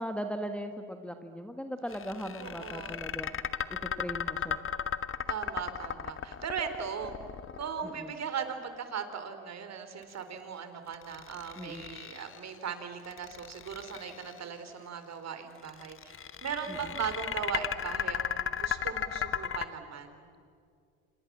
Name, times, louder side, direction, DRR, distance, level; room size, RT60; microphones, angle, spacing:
voice 1, 0.0-3.3 3.7-4.6 7.8-8.1 11.6-11.9 16.7-16.9, equal, 5° left, 6 dB, 1.6 m, -38 dB
sound 1, 1.9-8.1 10.9-12.5 13.0-14.4 15.6-19.7, left 8 dB, 30° left, 1.1 m, -35 dB
voice 2, 2.4-3.0 5.3-7.2 7.5-20.2, right 7 dB, 40° right, 8 dB, 3.7 m, -38 dB
29.0 x 27.0 x 7.4 m, 2.3 s
hypercardioid pair, 85°, 40 cm